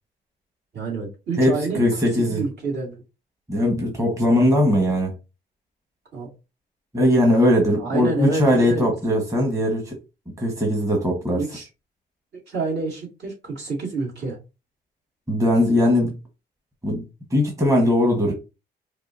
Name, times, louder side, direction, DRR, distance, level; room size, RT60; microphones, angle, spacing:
voice 1, 0.7-1.8 2.3-3.0 6.1-6.3 7.8-8.9 11.3-11.7 12.5-14.4, right 3 dB, 60° right, 2.0 m, -28 dB
voice 2, 1.4-2.4 3.5-5.1 6.9-10.0 10.4-11.4 15.3-16.1 16.8-17.0 17.3-18.3, left 1 dB, 15° right, 1.2 m, -20 dB
4.7 x 2.3 x 2.5 m
cardioid pair, 90°, 20 cm